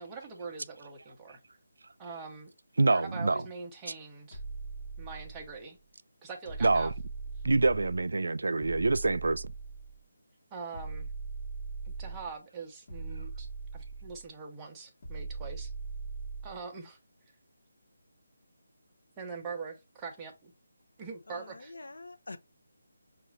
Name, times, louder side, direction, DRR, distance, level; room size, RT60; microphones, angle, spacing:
voice 1, 0.0-1.4 2.0-2.5 2.9-4.4 5.0-5.8 6.2-6.9 10.5-11.1 11.9-13.5 13.7-15.7 16.4-17.0 19.2-20.5 21.0-21.7, right 5 dB, 10° right, 0.6 m, -43 dB
voice 2, 2.8-3.4 6.6-6.9 7.4-9.5, right 3 dB, 70° right, 0.4 m, -26 dB
sound 1, 4.3-5.6 6.5-8.1 8.6-10.0 10.7-12.3 12.9-14.3 15.0-16.6, right 4 dB, 35° left, 1.3 m, -40 dB
voice 3, 21.3-22.4, left 3 dB, 75° left, 0.7 m, -45 dB
5.8 x 2.4 x 3.2 m
hypercardioid pair, 175°, 0 cm